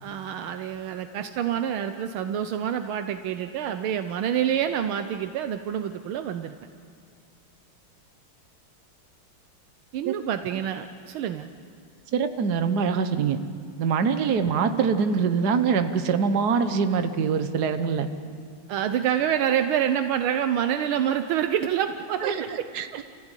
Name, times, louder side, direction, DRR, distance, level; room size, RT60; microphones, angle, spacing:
voice 1, 0.0-6.5 9.9-11.5 18.7-23.0, right 9 dB, 80° right, 9 dB, 1.6 m, -27 dB
voice 2, 12.1-13.4 13.8-18.1 22.2-23.0, right 6 dB, 55° right, 9 dB, 1.6 m, -24 dB
30.0 x 15.5 x 9.1 m, 2.2 s
omnidirectional pair, 2.3 m